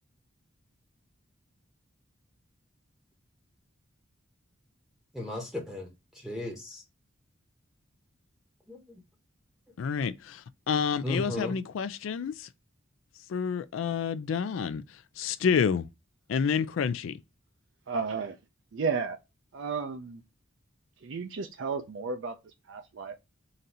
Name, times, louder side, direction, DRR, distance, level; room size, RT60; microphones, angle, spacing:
voice 1, 5.1-5.9 6.2-6.8 8.7-9.0 11.0-11.5, left 2 dB, ahead, 0.8 m, -35 dB
voice 2, 9.8-12.5 13.3-14.8 15.2-15.9 16.3-17.1, left 6 dB, 75° left, 0.3 m, -29 dB
voice 3, 17.9-18.4 18.7-19.2 19.5-20.2 21.0-23.2, right 5 dB, 65° right, 0.5 m, -33 dB
3.9 x 2.6 x 4.1 m
head